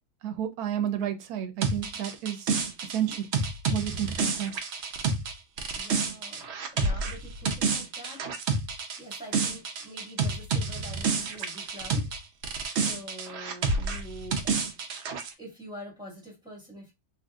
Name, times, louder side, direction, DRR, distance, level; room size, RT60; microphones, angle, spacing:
voice 1, 0.2-2.5 2.9-3.3 3.7-4.5, right 10 dB, 85° right, 1.1 m, -31 dB
sound 1, 1.6-12.2 12.4-15.3, right 4 dB, 60° right, 0.8 m, -29 dB
voice 2, 5.7-8.5 9.0-12.1 12.7-14.5 15.4-16.9, equal, 5° right, 1.5 m, -45 dB
3.4 x 2.6 x 2.3 m
omnidirectional pair, 1.6 m